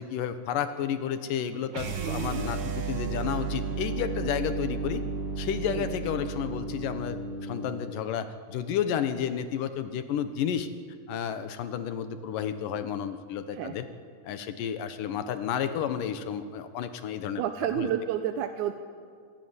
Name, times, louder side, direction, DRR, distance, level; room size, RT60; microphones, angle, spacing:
voice 1, 0.0-5.0 5.4-10.7 11.1-13.9 14.2-17.9, left 8 dB, 70° left, 10 dB, 2.6 m, -31 dB
sound 1, 1.7-7.9, right 4 dB, 50° right, 1.4 m, -33 dB
voice 2, 1.9-2.4 5.7-5.9 13.6-13.7 17.4-18.7, right 10 dB, 70° right, 7 dB, 2.0 m, -30 dB
26.5 x 17.0 x 9.8 m, 2.1 s
omnidirectional pair, 4.3 m